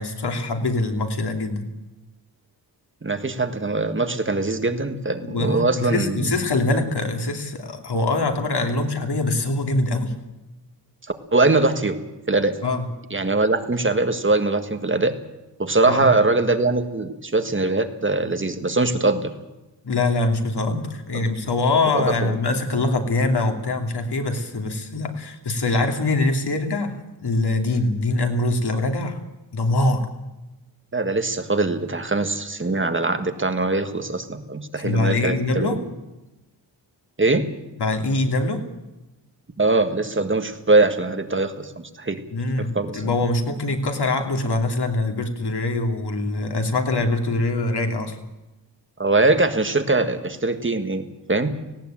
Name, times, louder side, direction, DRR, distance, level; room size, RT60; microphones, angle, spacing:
voice 1, 0.0-1.7 5.2-10.1 12.6-12.9 15.9-16.1 19.8-26.9 27.2-29.2 29.5-30.1 34.8-35.8 37.8-38.6 42.3-48.2, left 2 dB, 65° left, 4 dB, 2.9 m, -23 dB
voice 2, 3.0-6.4 11.3-12.0 12.3-12.6 13.1-15.2 15.6-19.3 21.1-21.2 21.9-22.4 30.9-35.8 37.2-37.5 39.6-42.2 42.6-43.0 49.0-51.6, right 2 dB, 30° right, 8 dB, 1.7 m, -22 dB
18.5 x 17.0 x 9.0 m, 1.0 s
wide cardioid pair, 130°, 42 cm